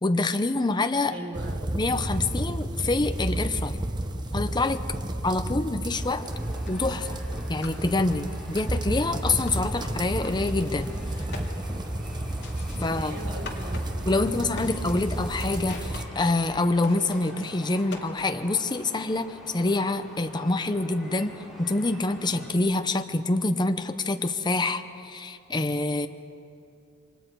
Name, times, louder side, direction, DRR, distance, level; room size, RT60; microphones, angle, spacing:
voice 1, 0.0-1.1 1.8-3.8 4.3-4.8 5.2-6.3 6.7-7.2 7.5-10.9 12.8-13.2 14.1-21.3 21.6-26.1, left 2 dB, 20° left, 8 dB, 0.7 m, -26 dB
voice 2, 1.1-1.6 12.9-13.9, right 1 dB, 70° right, 0 dB, 4.2 m, -39 dB
sound 1, 1.3-16.0, right 1 dB, 20° right, 0.9 m, -31 dB
sound 2, 5.9-22.5, left 1 dB, ahead, 4.6 m, -46 dB
sound 3, 6.6-18.6, left 3 dB, 60° left, 2.4 m, -47 dB
28.5 x 24.0 x 4.6 m, 2.6 s
head